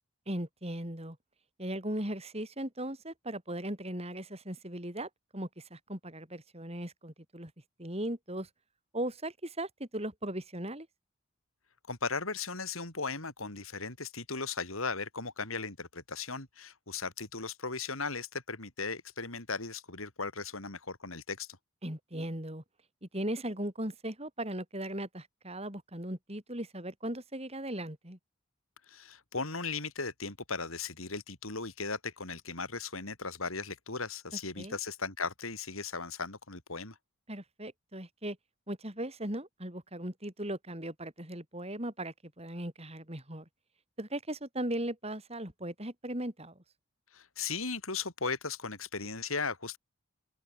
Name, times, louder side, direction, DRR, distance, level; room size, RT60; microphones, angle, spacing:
voice 1, 0.3-1.2 1.6-7.5 7.8-8.5 8.9-10.9 21.8-22.6 23.0-28.2 34.6-34.8 37.3-38.4 38.7-43.5 44.0-46.6, right 1 dB, 30° right, 5.7 m, -38 dB
voice 2, 11.9-21.5 28.9-37.0 47.1-49.8, left 4 dB, 85° left, 5.4 m, -37 dB
open air
head